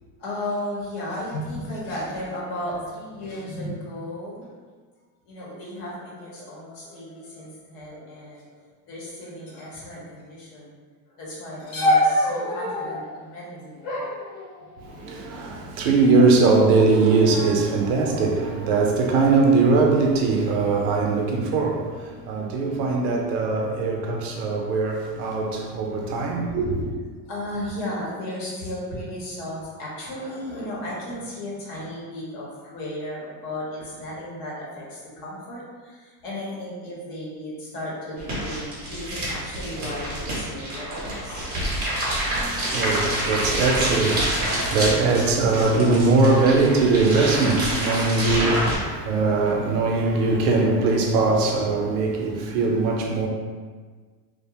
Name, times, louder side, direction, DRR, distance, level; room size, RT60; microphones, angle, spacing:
voice 1, 0.2-4.5 5.3-8.6 8.9-10.8 11.2-14.0 14.3-14.4 25.9-26.4 27.2-41.5 43.2-43.3 43.6-43.8 44.9-45.0, left 1 dB, 45° left, 0.9 m, -34 dB
sound 1, 11.8-13.0 13.8-15.0 15.8-16.3 16.7-17.2 17.9-19.2 20.0-20.4, left 1 dB, 20° left, 1.0 m, -27 dB
voice 2, 14.8-26.9 42.3-53.3, right 3 dB, 60° right, 0.6 m, -21 dB
sound 2, 38.2-48.8, right 1 dB, 20° right, 0.6 m, -27 dB
2.4 x 2.1 x 2.8 m
supercardioid pair, 145°, 50 cm